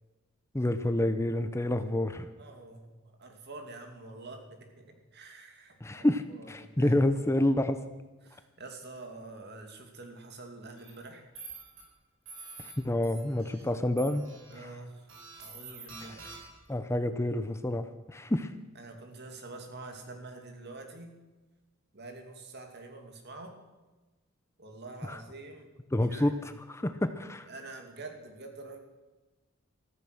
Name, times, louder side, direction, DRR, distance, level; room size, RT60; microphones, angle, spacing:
voice 1, 0.5-2.3 5.8-7.8 12.6-14.2 14.5-14.8 16.0-16.2 16.7-18.5 25.0-25.2 25.9-27.5, left 1 dB, 15° left, 10 dB, 0.6 m, -29 dB
voice 2, 2.4-2.9 3.2-6.1 6.4-7.0 8.2-11.3 14.5-15.1 15.4-16.3 18.8-21.2 21.9-23.5 24.6-25.7 26.1-26.4 27.4-28.8, right 2 dB, 55° right, 4 dB, 2.6 m, -46 dB
sound 1, 10.8-10.9 11.4-11.8 12.3-12.7 13.0-13.6 14.0-14.5 15.1-16.7, right 4 dB, 75° right, 5.0 m, -47 dB
14.5 x 14.0 x 6.3 m, 1.2 s
head